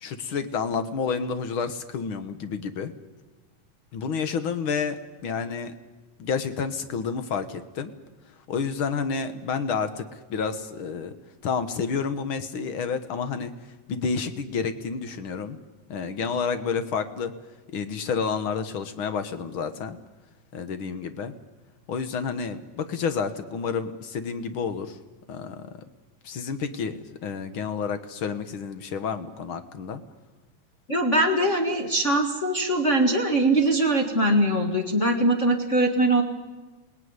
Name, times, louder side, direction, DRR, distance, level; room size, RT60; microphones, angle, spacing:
voice 1, 0.0-2.9 3.9-5.8 6.2-7.9 8.5-11.1 11.4-13.5 13.9-15.6 15.9-17.3 17.7-20.0 20.5-21.3 21.9-25.0 25.3-25.7 26.2-30.0, left 5 dB, 55° left, 10 dB, 1.5 m, -30 dB
voice 2, 30.9-36.2, right 1 dB, 30° left, 1 dB, 1.6 m, -22 dB
27.0 x 18.5 x 9.6 m, 1.2 s
omnidirectional pair, 3.6 m